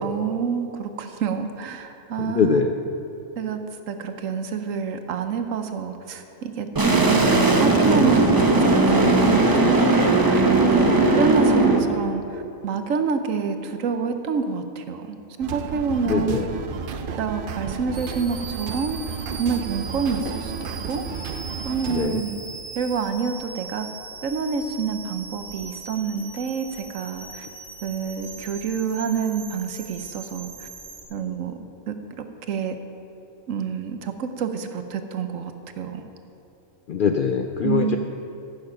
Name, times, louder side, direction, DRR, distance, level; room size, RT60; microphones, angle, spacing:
voice 1, 0.0-2.6 3.4-3.6 3.9-10.8 11.2-16.4 17.2-21.0 21.6-22.4 22.7-23.9 24.2-27.5 27.8-30.7 31.1-31.5 31.9-32.8 33.5-36.0 37.6-38.0, right 6 dB, 75° right, 8 dB, 1.1 m, -27 dB
voice 2, 2.3-2.8 10.8-11.0 16.1-16.5 21.9-22.2 36.9-38.0, left 6 dB, 65° left, 5 dB, 0.5 m, -22 dB
sound 1, 6.8-11.8, right 2 dB, 20° right, 0.7 m, -18 dB
sound 2, 15.4-22.1, right 6 dB, 55° right, 0.6 m, -32 dB
sound 3, 17.9-31.0, right 4 dB, 40° right, 1.8 m, -40 dB
15.0 x 6.9 x 5.8 m, 2.8 s
omnidirectional pair, 1.4 m